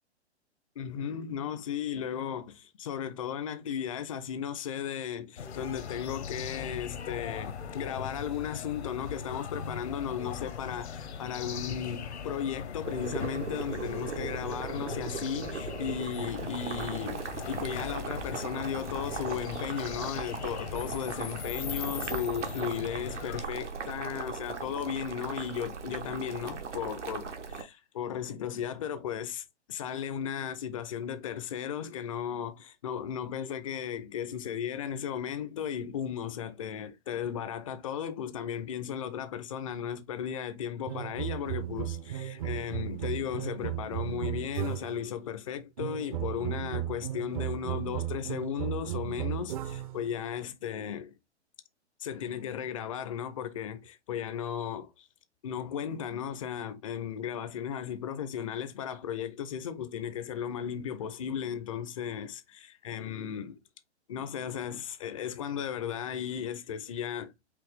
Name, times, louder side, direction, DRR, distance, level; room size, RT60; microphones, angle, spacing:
voice 1, 0.8-51.1 52.0-55.1 55.4-63.6 64.1-67.3, left 8 dB, 30° left, 0.4 m, -35 dB
sound 1, 5.4-23.4, left 6 dB, 70° left, 0.8 m, -40 dB
Boiling, 12.8-27.6, right 5 dB, 80° right, 1.1 m, -38 dB
sound 2, 40.9-45.1 45.8-50.0, right 12 dB, 30° right, 0.5 m, -35 dB
4.9 x 2.9 x 3.3 m
figure-of-eight pair, 125°, 35 cm